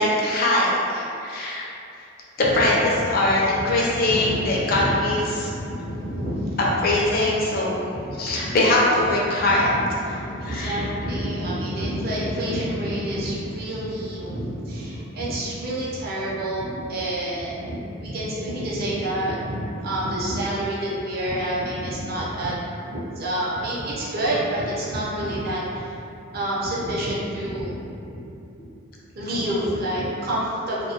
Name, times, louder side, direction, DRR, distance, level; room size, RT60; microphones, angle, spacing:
voice 1, 0.0-1.7 2.5-5.5 6.8-7.8 8.2-9.7 10.5-10.8, left 1 dB, 50° left, -4 dB, 0.4 m, -22 dB
voice 2, 2.5-3.4 3.7-7.6 7.9-8.6 9.1-22.6 22.8-26.0 26.3-28.3 29.1-30.9, right 1 dB, 50° right, -7 dB, 0.5 m, -28 dB
2.2 x 2.1 x 2.7 m, 2.7 s
head